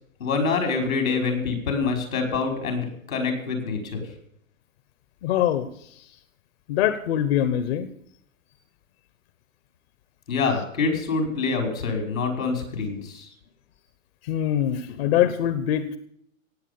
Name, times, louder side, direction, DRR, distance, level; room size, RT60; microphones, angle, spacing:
voice 1, 0.2-4.0 10.3-13.3, left 4 dB, 85° left, 5 dB, 5.4 m, -26 dB
voice 2, 5.2-6.1 6.7-7.9 14.2-16.0, left 11 dB, 50° left, 12 dB, 1.1 m, -24 dB
17.5 x 7.9 x 7.0 m, 0.70 s
hypercardioid pair, 130°, 41 cm